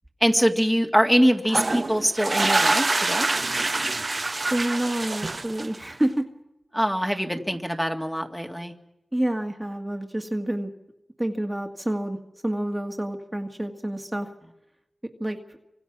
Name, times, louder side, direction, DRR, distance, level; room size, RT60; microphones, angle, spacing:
voice 1, 0.2-3.3 6.7-8.7, equal, 5° left, 3 dB, 2.1 m, -23 dB
sound 1, 1.4-6.0, right 2 dB, 45° right, 0.9 m, -25 dB
voice 2, 4.5-6.3 9.1-10.7 11.2-12.2 12.4-14.3 15.2-15.4, right 1 dB, 15° right, 4 dB, 1.9 m, -28 dB
29.5 x 25.5 x 6.1 m, 0.88 s
wide cardioid pair, 65°, 0 cm